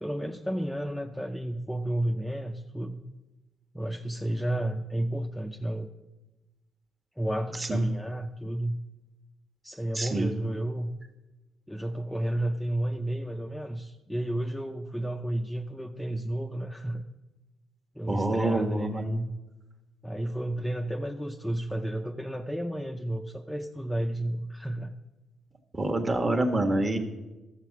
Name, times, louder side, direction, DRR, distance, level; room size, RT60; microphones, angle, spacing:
voice 1, 0.0-3.0 3.7-5.9 7.2-8.8 9.6-10.9 11.7-17.0 17.9-19.3 20.0-24.9, right 1 dB, 5° left, 2 dB, 0.6 m, -32 dB
voice 2, 9.9-10.3 18.1-19.0 25.7-27.0, right 2 dB, 25° right, 5 dB, 1.4 m, -26 dB
13.0 x 7.3 x 5.9 m, 1.1 s
cardioid pair, 90°, 0 cm